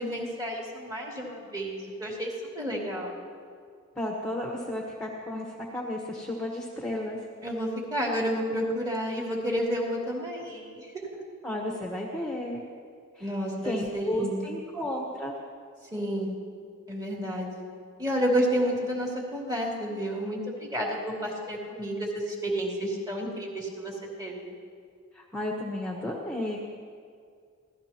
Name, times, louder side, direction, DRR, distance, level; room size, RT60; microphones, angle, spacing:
voice 1, 0.0-3.2 7.4-11.2 13.2-14.5 15.9-16.3 16.9-17.5 18.0-24.5, equal, 20° right, -3 dB, 3.1 m, -30 dB
voice 2, 3.9-7.2 11.4-12.7 13.1-13.3 13.6-15.3 25.1-26.6, left 1 dB, 5° left, -2 dB, 1.3 m, -33 dB
25.5 x 17.5 x 3.0 m, 2.1 s
head